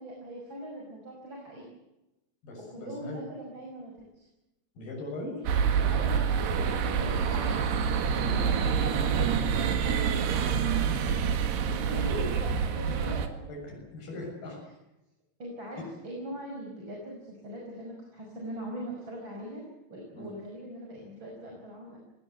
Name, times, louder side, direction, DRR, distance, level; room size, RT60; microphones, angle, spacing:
voice 1, 0.0-1.7 2.7-4.2 5.9-6.3 6.7-8.5 8.8-9.2 9.8-10.5 11.8-13.5 15.4-19.6 19.9-22.0, right 1 dB, 25° right, -1 dB, 6.2 m, -41 dB
voice 2, 2.4-3.2 4.8-5.9 7.0-7.2 8.2-8.5 10.9-11.3 13.5-14.6 20.1-20.3, left 2 dB, 60° left, -1 dB, 8.8 m, -40 dB
sound 1, 5.5-13.3, right 7 dB, 75° right, 4.0 m, -27 dB
27.5 x 19.0 x 8.1 m, 0.96 s
omnidirectional pair, 4.8 m